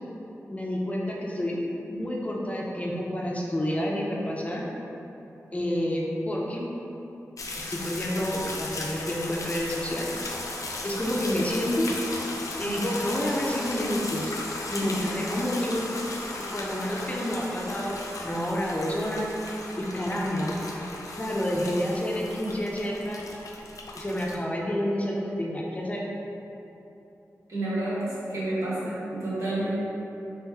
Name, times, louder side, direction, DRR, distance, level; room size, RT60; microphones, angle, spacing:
voice 1, 0.5-1.6 1.9-4.6 5.5-6.6 7.6-10.3 10.8-11.9 12.6-14.3 14.7-15.9 16.4-20.5 21.1-23.2 23.9-26.0, equal, 25° left, -3 dB, 0.5 m, -29 dB
sound 1, 7.4-24.4, left 2 dB, 75° left, 0.4 m, -36 dB
voice 2, 14.8-15.3 27.5-29.7, right 1 dB, 65° right, -11 dB, 1.4 m, -30 dB
3.1 x 3.0 x 3.4 m, 3.0 s
cardioid pair, 50°, 6 cm